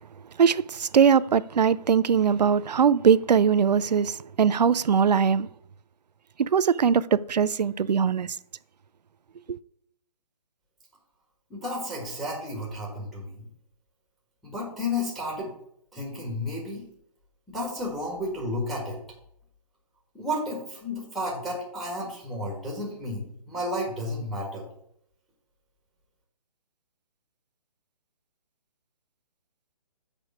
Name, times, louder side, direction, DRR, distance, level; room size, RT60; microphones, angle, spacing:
voice 1, 0.4-5.5 6.4-8.3, right 7 dB, 90° right, 0.4 m, -21 dB
voice 2, 11.5-13.4 14.4-15.5 15.9-16.8 17.5-19.0 20.1-24.6, left 1 dB, ahead, 1.5 m, -32 dB
6.6 x 4.8 x 6.2 m
hypercardioid pair, 150°, 21 cm